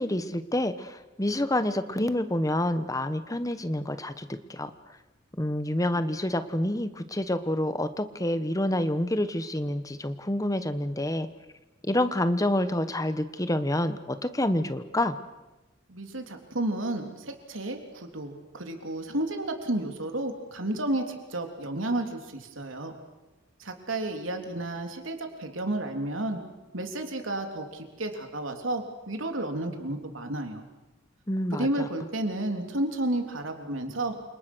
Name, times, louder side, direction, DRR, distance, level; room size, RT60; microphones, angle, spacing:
voice 1, 0.0-4.7 5.4-11.3 11.8-15.2 31.3-31.9, left 1 dB, 15° left, 11 dB, 1.2 m, -28 dB
voice 2, 15.9-22.9 23.6-26.4 26.7-30.6 31.6-34.2, right 1 dB, 85° right, 4 dB, 3.5 m, -32 dB
29.0 x 27.0 x 6.3 m, 1.0 s
head